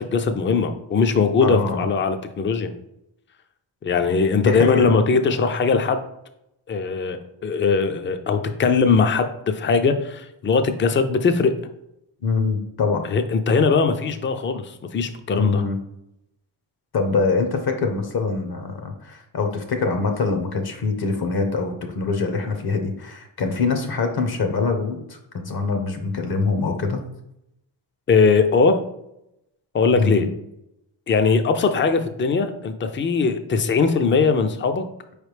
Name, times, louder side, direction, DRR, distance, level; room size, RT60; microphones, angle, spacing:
voice 1, 0.0-2.7 3.8-6.0 6.7-11.5 13.0-15.6 28.1-28.8 29.7-30.3 31.1-34.8, left 4 dB, 25° left, 8 dB, 0.4 m, -20 dB
voice 2, 1.4-1.9 4.4-4.8 12.2-13.0 15.3-15.8 16.9-27.0 29.9-30.3, left 4 dB, 55° left, 6 dB, 0.8 m, -24 dB
4.6 x 3.2 x 3.2 m, 0.83 s
cardioid pair, 75°, 45 cm